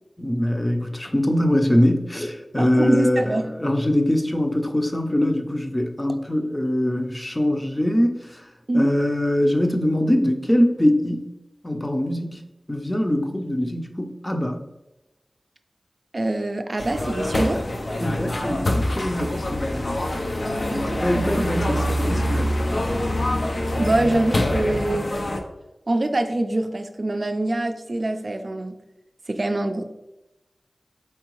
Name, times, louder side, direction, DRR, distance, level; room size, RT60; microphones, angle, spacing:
voice 1, 0.2-8.4 8.7-11.3 11.6-14.6 18.0-20.0 20.9-22.6, left 1 dB, 20° left, 4 dB, 0.6 m, -23 dB
voice 2, 2.6-3.5 6.1-6.2 8.7-8.9 16.1-17.6 20.7-21.5 23.8-25.1 25.9-28.8 29.3-29.8, right 1 dB, 50° right, 7 dB, 0.4 m, -24 dB
sound 1, 16.8-25.4, left 1 dB, 60° left, 0.6 m, -25 dB
4.6 x 3.4 x 3.0 m, 0.98 s
cardioid pair, 45°, 0 cm